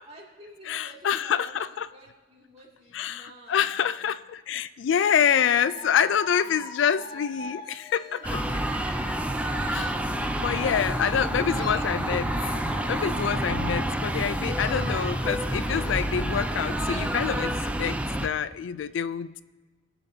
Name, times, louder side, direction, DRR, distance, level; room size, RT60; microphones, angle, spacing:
voice 1, 0.1-4.1 5.4-6.7 6.9-7.6 8.1-9.0, right 1 dB, 35° right, -3 dB, 2.4 m, -51 dB
voice 2, 0.7-1.9 2.9-8.4 9.6-10.0 10.4-12.4 12.9-19.4, left 8 dB, 75° left, 15 dB, 0.3 m, -26 dB
Dog / Alarm, 5.3-11.2 11.5-14.2 14.5-17.3, left 1 dB, 25° left, 2.7 m, -41 dB
sound 1, 8.2-18.3, right 1 dB, 5° right, 0.5 m, -28 dB
20.0 x 7.1 x 2.8 m, 1.4 s
head